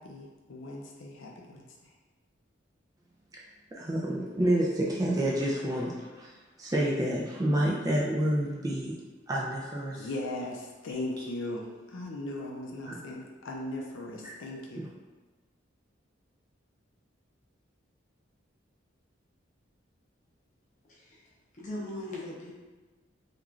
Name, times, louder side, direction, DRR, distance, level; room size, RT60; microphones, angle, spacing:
voice 1, 0.0-1.9 9.9-14.9, left 1 dB, 75° left, -1 dB, 0.4 m, -38 dB
voice 2, 3.8-6.3 6.6-8.9 9.3-10.0 12.9-13.0 14.2-14.3 14.8-14.9, right 1 dB, 20° right, -3 dB, 0.3 m, -28 dB
voice 3, 20.9-21.2 21.5-22.5, left 1 dB, 40° left, -6 dB, 0.7 m, -39 dB
3.0 x 2.4 x 2.4 m, 1.2 s
head